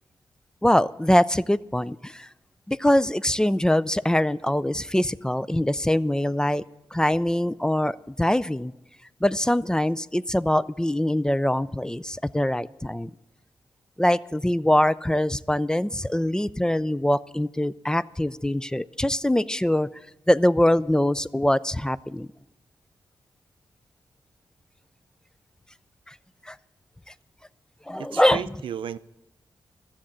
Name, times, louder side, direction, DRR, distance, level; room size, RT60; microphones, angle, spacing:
voice 1, 0.6-2.3 2.7-6.6 6.9-8.7 9.2-13.1 14.0-19.9 20.3-22.3 26.1-26.2 26.5-26.6 27.9-28.4, left 1 dB, 10° left, 17 dB, 0.3 m, -23 dB
voice 2, 28.0-29.0, right 9 dB, 90° right, 14 dB, 0.4 m, -33 dB
13.0 x 7.3 x 8.8 m, 0.95 s
cardioid pair, 70°, 8 cm